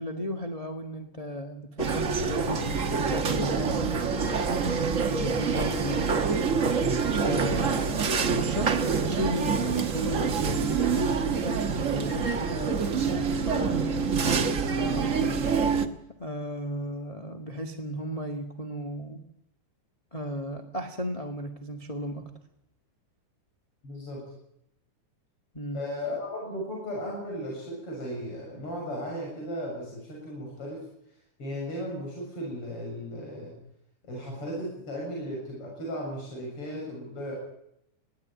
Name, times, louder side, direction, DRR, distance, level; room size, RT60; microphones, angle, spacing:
voice 1, 0.0-4.6 5.1-6.7 7.2-14.1 14.8-15.4 16.2-19.2 20.1-22.3 25.5-25.8, equal, 15° left, 2 dB, 1.2 m, -35 dB
sound 1, 1.8-15.9, right 5 dB, 50° right, 0.9 m, -26 dB
voice 2, 23.8-24.3 25.7-30.9 31.4-33.6 34.1-37.3, equal, 45° left, -2 dB, 8.0 m, -36 dB
21.5 x 16.5 x 9.1 m, 0.77 s
omnidirectional pair, 3.5 m